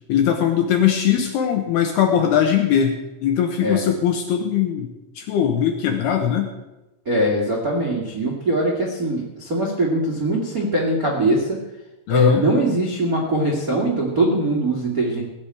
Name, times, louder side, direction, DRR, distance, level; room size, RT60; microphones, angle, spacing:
voice 1, 0.1-4.9 5.2-6.5 12.1-12.4, left 9 dB, 70° left, 4 dB, 2.5 m, -20 dB
voice 2, 7.0-11.6 12.1-15.2, right 1 dB, 70° right, -2 dB, 0.8 m, -21 dB
19.0 x 6.4 x 8.5 m, 0.98 s
omnidirectional pair, 5.9 m